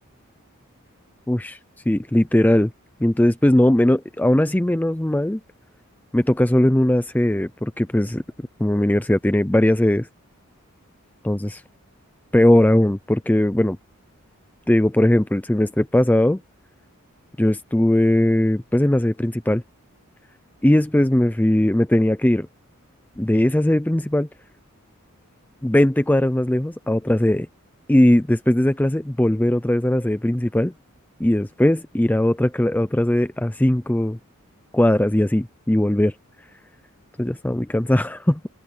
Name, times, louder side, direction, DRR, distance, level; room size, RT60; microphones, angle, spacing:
voice 1, 1.3-1.6 1.9-2.7 3.0-5.4 6.1-8.2 8.6-10.1 11.2-11.6 12.3-13.8 14.7-16.4 17.4-19.6 20.6-22.5 23.2-24.3 25.6-27.5 27.9-30.7 31.2-34.2 34.7-36.1 37.2-38.4, left 1 dB, 10° left, 0.5 m, -19 dB
head